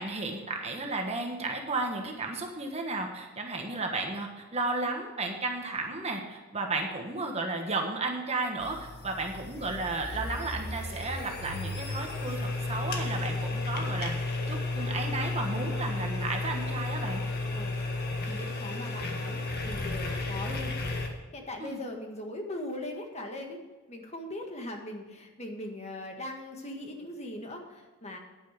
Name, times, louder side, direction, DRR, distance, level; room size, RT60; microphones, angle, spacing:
voice 1, 0.0-14.1 14.5-17.2 21.6-21.8, right 3 dB, 30° right, 2 dB, 1.4 m, -33 dB
sound 1, 8.6-21.1, left 2 dB, 45° left, 1.6 m, -33 dB
voice 2, 18.3-20.7 21.3-23.6 23.9-28.2, left 1 dB, 30° left, 3 dB, 1.7 m, -40 dB
10.5 x 9.2 x 5.1 m, 1.3 s
head